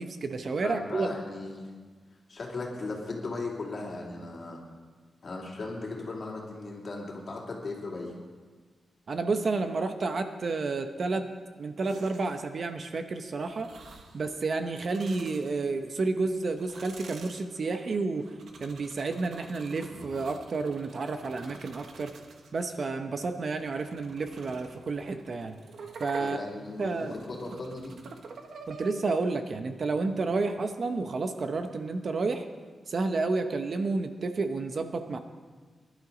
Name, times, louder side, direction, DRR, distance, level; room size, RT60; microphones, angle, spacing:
voice 1, 0.0-1.1 9.1-11.2 11.6-13.7 14.1-18.3 18.6-22.1 22.5-25.5 26.0-26.4 26.8-27.1 28.7-32.4 32.9-35.2, right 3 dB, 45° right, 7 dB, 0.9 m, -30 dB
voice 2, 0.6-1.7 2.3-4.6 5.2-8.1 26.2-27.9, left 3 dB, 45° left, -2 dB, 2.9 m, -37 dB
sound 1, 11.8-12.5 13.5-14.2 14.7-15.9 16.4-22.7 23.2-28.9, right 4 dB, 70° right, 1.4 m, -48 dB
22.5 x 11.5 x 4.0 m, 1.5 s
wide cardioid pair, 145°, 0 cm